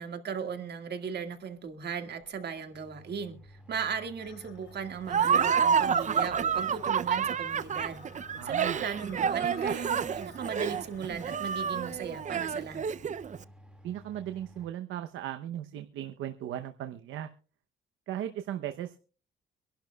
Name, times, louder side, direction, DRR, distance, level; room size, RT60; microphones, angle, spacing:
voice 1, 0.0-8.0 8.4-12.9, right 6 dB, 55° right, 1.9 m, -37 dB
sound 1, 1.6-1.7 2.2-2.3 2.6-14.7, equal, 5° right, 2.1 m, -54 dB
sound 2, 4.2-12.0, left 9 dB, 70° left, 2.1 m, -55 dB
Laughter, 5.1-13.4, right 7 dB, 40° right, 0.5 m, -28 dB
voice 2, 8.4-8.8 13.8-17.3 18.1-19.0, right 11 dB, 80° right, 0.8 m, -37 dB
25.0 x 11.5 x 2.3 m
cardioid pair, 90°, 20 cm